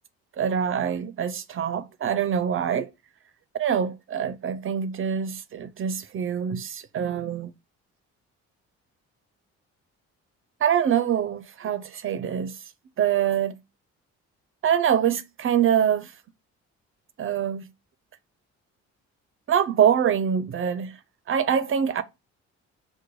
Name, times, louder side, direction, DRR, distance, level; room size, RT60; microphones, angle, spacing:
voice 1, 0.4-2.9 3.6-7.5 10.6-12.6 13.0-13.6 14.6-16.1 17.2-17.7 19.5-21.0 21.3-22.0, right 8 dB, 45° right, 0.4 m, -24 dB
4.7 x 2.2 x 4.5 m
cardioid pair, 90°, 30 cm